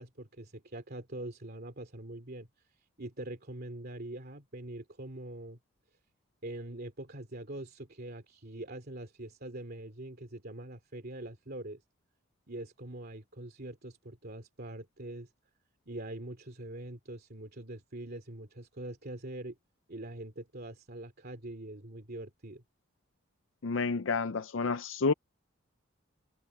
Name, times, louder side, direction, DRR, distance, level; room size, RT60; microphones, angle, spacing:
voice 1, 0.0-2.5 3.0-5.6 6.4-11.8 12.5-15.3 15.9-19.6 19.9-22.6, right 1 dB, 50° right, 2.8 m, -43 dB
voice 2, 23.6-25.1, left 4 dB, 65° left, 0.5 m, -29 dB
head